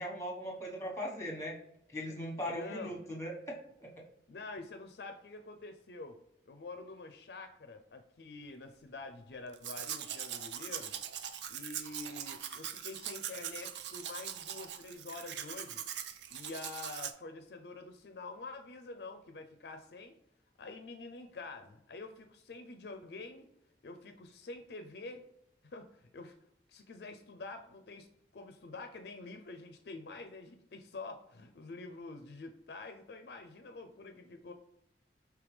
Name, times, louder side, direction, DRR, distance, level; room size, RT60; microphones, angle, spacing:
voice 1, 0.0-1.5 1.9-3.9, equal, 15° left, 0 dB, 1.2 m, -39 dB
voice 2, 2.5-3.0 4.3-6.2 6.5-11.0 11.5-15.8 16.3-20.2 20.6-23.5 23.8-25.2 25.6-26.4 26.7-28.1 28.3-34.5, left 3 dB, 65° left, 7 dB, 0.4 m, -47 dB
Domestic sounds home sounds, 9.5-17.1, right 9 dB, 80° right, 0.4 m, -42 dB
5.1 x 3.3 x 3.2 m, 0.79 s
head